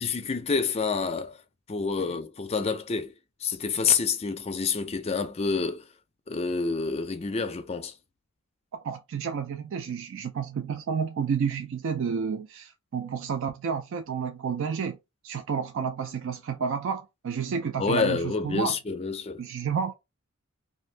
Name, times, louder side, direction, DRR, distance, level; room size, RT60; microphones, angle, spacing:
voice 1, 0.0-1.4 1.7-3.1 3.4-5.9 6.3-8.0 17.8-19.4, left 5 dB, 30° left, 0.4 m, -28 dB
voice 2, 8.7-15.0 15.2-18.7 19.4-19.9, right 6 dB, 60° right, 0.3 m, -30 dB
2.6 x 2.6 x 3.2 m
head